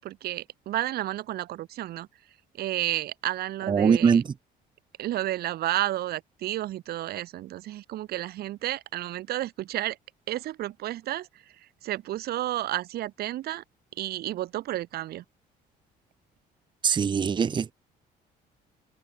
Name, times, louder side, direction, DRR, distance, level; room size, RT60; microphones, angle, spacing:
voice 1, 0.0-2.1 2.6-4.2 5.0-10.0 10.3-11.3 11.6-13.6 14.0-15.2, right 14 dB, 70° right, 1.2 m, -31 dB
voice 2, 3.7-4.2 16.8-17.7, right 6 dB, 25° right, 0.6 m, -22 dB
cardioid pair, 110°, 17 cm